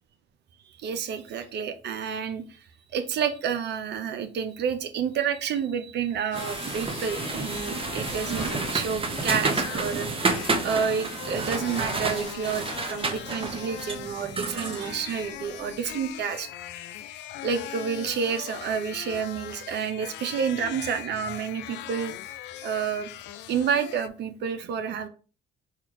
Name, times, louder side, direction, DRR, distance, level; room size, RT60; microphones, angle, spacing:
voice 1, 0.7-2.6 2.9-16.5 17.4-22.3 22.6-23.1 23.5-25.1, right 7 dB, 65° right, 9 dB, 0.7 m, -29 dB
sound 1, 6.3-24.1, left 13 dB, 70° left, 0.4 m, -40 dB
sound 2, 6.3-15.9, right 3 dB, 30° right, 0.9 m, -30 dB
4.5 x 2.4 x 4.5 m, 0.36 s
supercardioid pair, 65°, 19 cm